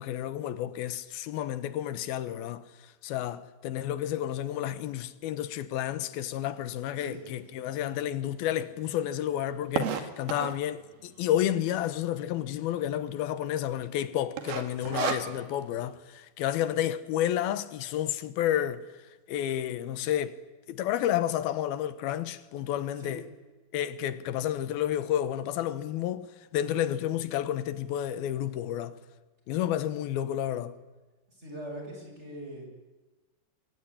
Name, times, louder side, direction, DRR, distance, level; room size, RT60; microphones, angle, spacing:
voice 1, 0.0-18.9 19.3-20.4 20.7-23.2 23.7-29.0 29.5-30.8, left 11 dB, 90° left, 3.0 m, -31 dB
sound 1, 7.3-7.4 7.9-8.0 8.2-8.3 8.6-10.7 11.3-11.8 12.1-12.2 12.4-12.5 13.1-13.4 13.7-14.0 14.4-15.6, right 7 dB, 90° right, 3.8 m, -32 dB
voice 2, 31.3-32.7, equal, 15° right, 6.8 m, -41 dB
25.0 x 23.5 x 9.9 m
omnidirectional pair, 4.2 m